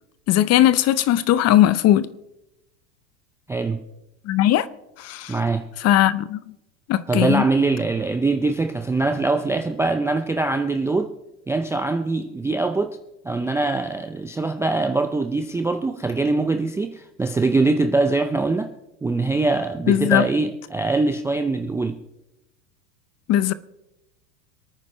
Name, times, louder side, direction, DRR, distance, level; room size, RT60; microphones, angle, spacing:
voice 1, 0.3-2.1 4.3-4.7 5.0-5.3 5.8-6.4 6.9-7.4 19.9-20.3 23.3-23.5, left 12 dB, 30° left, 0.7 m, -18 dB
voice 2, 3.5-3.8 5.3-5.7 7.1-11.1 11.5-13.0 13.2-18.7 19.0-22.0, right 3 dB, 5° right, 0.4 m, -23 dB
27.0 x 9.3 x 3.2 m
hypercardioid pair, 100°, 49 cm